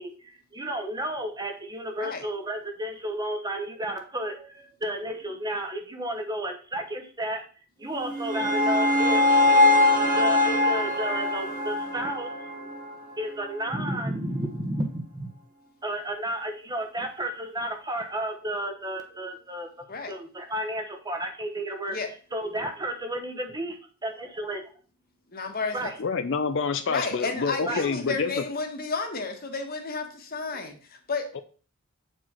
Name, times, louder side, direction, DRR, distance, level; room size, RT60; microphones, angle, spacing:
voice 1, 0.0-7.4 7.8-12.7 13.2-15.3 15.8-19.7 20.1-22.0 22.3-23.7 24.0-24.6 25.7-25.9 27.7-27.8, right 1 dB, 20° right, 5 dB, 1.1 m, -32 dB
sound 1, 7.9-13.1, left 2 dB, 35° right, 2.2 m, -22 dB
voice 2, 25.3-25.9 26.9-31.3, left 4 dB, 45° left, 5 dB, 1.4 m, -32 dB
voice 3, 26.0-28.4 31.3-31.4, left 5 dB, 60° left, 9 dB, 0.5 m, -27 dB
8.0 x 4.6 x 4.4 m, 0.39 s
head